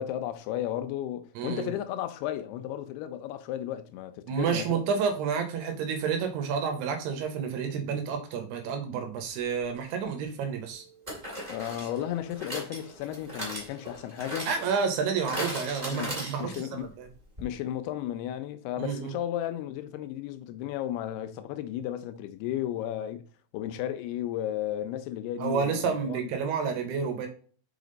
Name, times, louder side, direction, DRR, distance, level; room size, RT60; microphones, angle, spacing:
voice 1, 0.0-4.7 11.5-14.5 15.9-16.9 17.4-23.2 23.5-26.3, left 11 dB, 85° left, 2.6 m, -34 dB
voice 2, 1.4-1.7 4.3-10.8 14.5-17.1 18.8-19.2 25.4-27.3, right 6 dB, 85° right, 3.3 m, -30 dB
sound 1, 9.8-9.9 11.1-16.8 17.1-17.2 17.4-17.5, equal, 15° right, 1.6 m, -38 dB
6.0 x 5.6 x 4.0 m
omnidirectional pair, 4.6 m